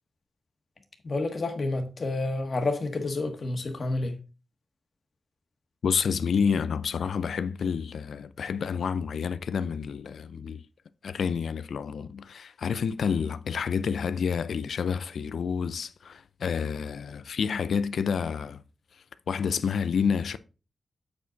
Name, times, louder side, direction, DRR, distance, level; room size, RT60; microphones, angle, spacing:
voice 1, 1.0-4.1, left 2 dB, 50° left, 1.5 m, -29 dB
voice 2, 5.8-10.6 11.0-18.6 19.3-20.4, left 6 dB, 80° left, 0.5 m, -29 dB
8.0 x 5.2 x 4.0 m
wide cardioid pair, 90°, 0 cm